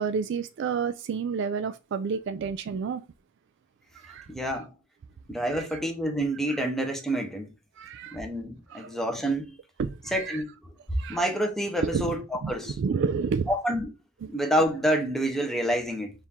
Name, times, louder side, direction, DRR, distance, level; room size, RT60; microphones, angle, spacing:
voice 1, 0.0-3.0 4.0-4.3 5.5-5.7 6.5-6.6 7.8-8.2 8.7-8.9 9.8-10.4 11.0-11.2 11.8-12.1 12.4-12.5 12.8-13.5 14.2-14.3, right 5 dB, 60° right, 0.3 m, -30 dB
voice 2, 4.3-4.7 5.3-7.5 8.1-9.5 10.1-10.6 11.1-12.8 13.5-13.9 14.3-16.1, right 1 dB, ahead, 0.8 m, -28 dB
4.5 x 2.6 x 3.6 m
head